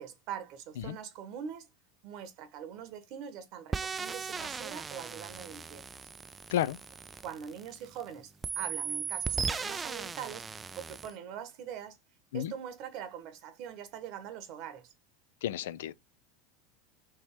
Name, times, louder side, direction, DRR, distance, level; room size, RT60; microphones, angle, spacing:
voice 1, 0.0-1.7 2.0-5.8 7.2-12.0 12.3-14.9, right 8 dB, 55° right, 1.1 m, -43 dB
sound 1, 3.7-8.0 8.4-11.1, right 5 dB, 20° right, 0.4 m, -37 dB
voice 2, 15.4-15.9, left 11 dB, 75° left, 0.4 m, -32 dB
3.5 x 3.0 x 4.5 m
hypercardioid pair, 90°, 0 cm